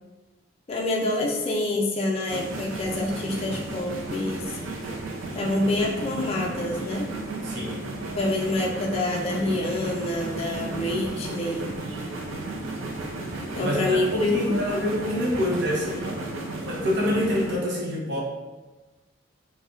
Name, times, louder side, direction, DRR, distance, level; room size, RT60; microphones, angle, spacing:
voice 1, 0.7-4.6 5.3-7.1 8.2-11.9 13.5-14.7, left 2 dB, 30° left, -1 dB, 0.3 m, -27 dB
sound 1, 2.3-17.6, right 2 dB, 90° right, 0.5 m, -34 dB
voice 2, 7.4-7.8 13.6-16.2 16.6-18.2, left 1 dB, 60° right, -4 dB, 0.7 m, -26 dB
2.5 x 2.1 x 3.5 m, 1.2 s
head